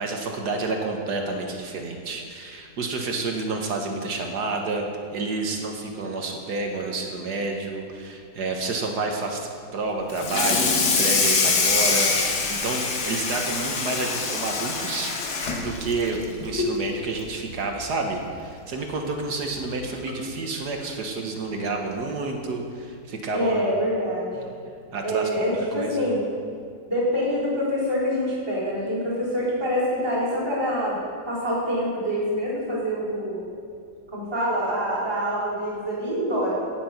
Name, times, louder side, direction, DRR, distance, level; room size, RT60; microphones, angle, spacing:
voice 1, 0.0-4.9 5.1-15.1 15.6-23.7 24.9-25.3 25.7-26.0, right 3 dB, 65° right, 2 dB, 1.8 m, -29 dB
Water tap faucet / Sink (filling or washing), 10.1-16.8 17.2-17.4 17.8-17.9 18.3-18.4 19.5-19.6 20.1-20.3, left 4 dB, 65° left, 1.8 m, -24 dB
voice 2, 23.3-24.4 25.0-26.2 26.9-31.0 31.3-33.4 34.1-36.5, equal, 15° right, -11 dB, 4.1 m, -25 dB
17.0 x 7.0 x 5.9 m, 2.2 s
omnidirectional pair, 2.0 m